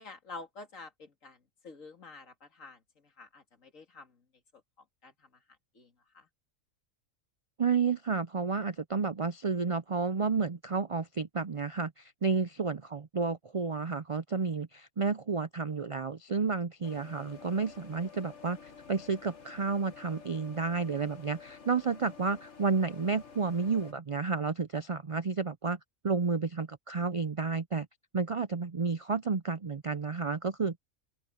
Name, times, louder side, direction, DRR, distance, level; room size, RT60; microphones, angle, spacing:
voice 1, 0.0-4.2 5.0-5.4 5.7-6.3, left 3 dB, 75° left, 2.8 m, -49 dB
voice 2, 7.6-25.8 26.0-27.9 28.1-30.8, right 4 dB, 55° right, 0.3 m, -31 dB
sound 1, 16.8-23.9, left 6 dB, 60° left, 1.8 m, -51 dB
open air
omnidirectional pair, 1.4 m